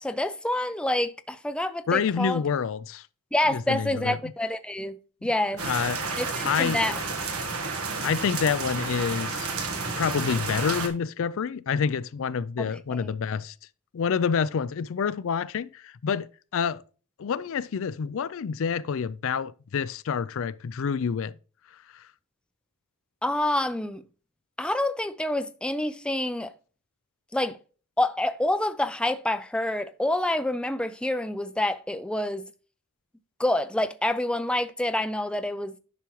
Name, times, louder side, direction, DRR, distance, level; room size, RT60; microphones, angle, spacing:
voice 1, 0.0-2.4 3.3-5.6 6.2-7.0 12.6-13.1 23.2-24.0 24.6-26.5 27.3-27.6 28.0-32.4 33.4-35.8, left 1 dB, 5° left, 0.5 m, -27 dB
voice 2, 1.9-3.0 3.5-4.2 5.2-5.3 5.6-6.0 6.4-6.8 8.0-9.5 10.0-13.5 13.9-16.8 17.2-21.3 21.9-22.0, left 6 dB, 65° left, 0.4 m, -28 dB
sound 1, 5.6-10.9, right 4 dB, 75° right, 1.4 m, -31 dB
10.5 x 5.9 x 3.1 m
head